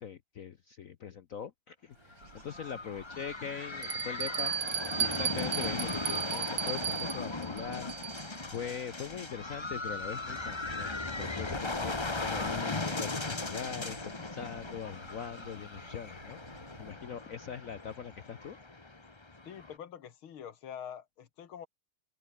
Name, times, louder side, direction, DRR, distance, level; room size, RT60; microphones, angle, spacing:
voice 1, 0.0-8.1 8.5-10.9 11.2-18.6, left 7 dB, 55° left, 0.9 m, -42 dB
Bird / Insect / Wind, 1.9-16.9, right 4 dB, 85° right, 5.0 m, -57 dB
sound 1, 2.1-19.8, left 3 dB, 15° left, 1.0 m, -38 dB
Bell, 2.2-2.3 3.0-3.1 3.8-8.4, right 8 dB, 55° right, 1.9 m, -35 dB
voice 2, 19.4-21.7, left 8 dB, 80° left, 2.4 m, -45 dB
omnidirectional pair, 2.3 m